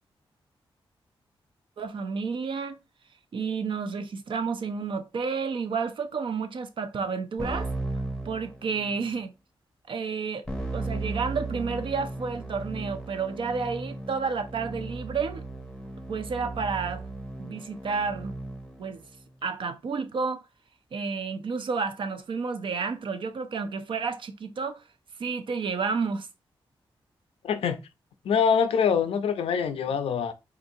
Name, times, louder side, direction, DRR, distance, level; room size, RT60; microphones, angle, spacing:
voice 1, 1.8-2.8 3.3-7.7 8.2-9.3 9.9-10.4 10.7-15.4 16.1-17.0 17.4-18.4 18.8-19.0 19.4-20.4 20.9-24.8 25.2-26.3, right 5 dB, 60° right, 0.5 m, -30 dB
Keyboard (musical), 7.4-9.1 10.5-18.9, right 2 dB, 10° left, 0.7 m, -36 dB
voice 2, 27.4-27.8 28.2-30.3, left 7 dB, 80° left, 0.4 m, -24 dB
3.8 x 2.5 x 2.6 m
cardioid pair, 80°, 10 cm